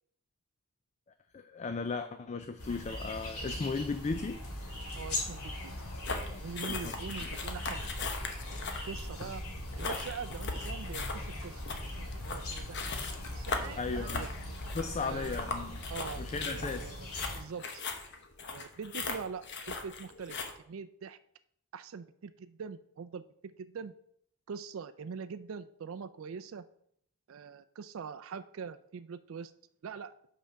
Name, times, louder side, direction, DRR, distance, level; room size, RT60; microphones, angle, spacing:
voice 1, 1.3-4.4 6.7-6.9 7.2-7.3 12.2-12.3 13.8-14.3 14.7-16.9, left 4 dB, 30° left, 9 dB, 0.3 m, -36 dB
sound 1, 2.6-17.4, left 1 dB, 85° left, 2.3 m, -40 dB
voice 2, 4.9-5.7 6.2-8.1 8.8-9.4 9.8-11.6 11.9-14.3 15.0-15.5 15.9-17.8 18.5-20.4 20.7-21.2 21.7-23.9 24.5-26.7 27.3-29.5 29.8-30.1, right 6 dB, 60° right, 11 dB, 0.4 m, -43 dB
sound 2, 6.0-20.5, left 4 dB, 50° left, 0.9 m, -39 dB
5.6 x 5.1 x 6.3 m, 0.66 s
head